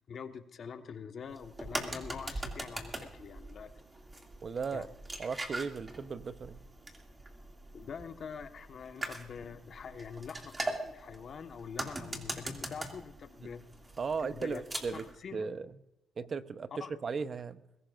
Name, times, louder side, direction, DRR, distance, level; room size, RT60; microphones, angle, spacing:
voice 1, 0.1-3.7 4.7-4.9 7.7-13.6 14.2-14.6 14.9-15.4 16.8-16.9, left 6 dB, 55° left, 6 dB, 1.4 m, -45 dB
sound 1, 1.3-15.1, right 2 dB, 25° right, 2.4 m, -42 dB
voice 2, 4.4-4.9 5.2-6.6 13.4-13.5 14.0-15.7 16.2-17.6, right 5 dB, 45° right, 12 dB, 0.8 m, -37 dB
21.5 x 16.5 x 2.6 m, 0.93 s
cardioid pair, 90°, 0 cm